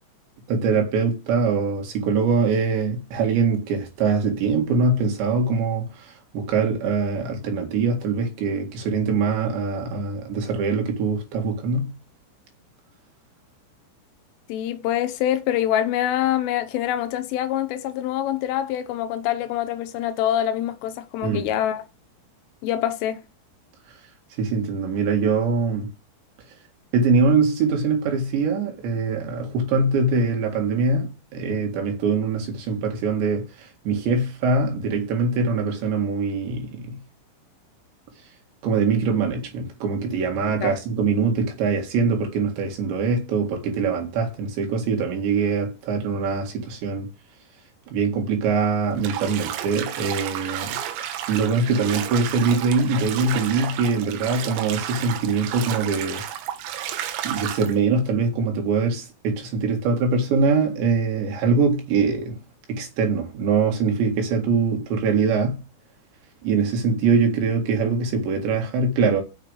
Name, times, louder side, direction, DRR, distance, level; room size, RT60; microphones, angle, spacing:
voice 1, 0.5-11.9 21.2-21.5 24.4-25.9 26.9-37.0 38.6-47.1 47.9-50.8 51.3-56.2 57.2-62.4 62.7-65.6 66.4-69.2, right 4 dB, 65° right, 3.9 m, -23 dB
voice 2, 14.5-21.8 22.6-23.3 40.6-40.7, left 11 dB, 80° left, 3.3 m, -25 dB
Bathtub (filling or washing), 49.0-57.8, right 11 dB, 85° right, 3.9 m, -32 dB
7.6 x 6.6 x 8.1 m
omnidirectional pair, 6.0 m